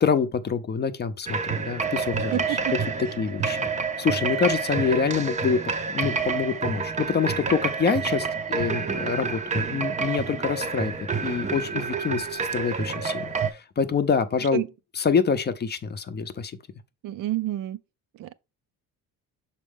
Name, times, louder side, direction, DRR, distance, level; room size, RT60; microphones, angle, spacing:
voice 1, 0.0-2.4 3.0-3.7 4.0-5.6 5.9-10.9 11.2-14.6 15.0-16.5, left 6 dB, 30° left, 0.5 m, -26 dB
sound 1, 1.3-13.5, right 5 dB, 20° right, 0.5 m, -28 dB
voice 2, 2.3-2.8 14.5-14.7 17.0-17.8 18.1-18.3, right 15 dB, 65° right, 0.5 m, -29 dB
6.2 x 4.3 x 3.5 m
cardioid pair, 125°, 35 cm